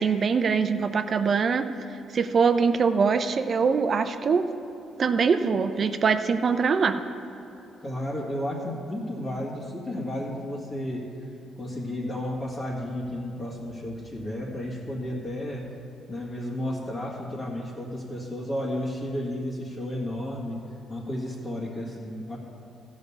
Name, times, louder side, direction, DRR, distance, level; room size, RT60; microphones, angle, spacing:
voice 1, 0.0-1.7 2.1-4.4 5.0-7.0, right 5 dB, 50° right, 9 dB, 0.6 m, -23 dB
voice 2, 7.8-11.0 11.5-15.7 16.1-20.6 20.9-22.4, left 1 dB, 35° left, -5 dB, 1.8 m, -32 dB
14.0 x 5.4 x 7.1 m, 2.9 s
cardioid pair, 90°, 0 cm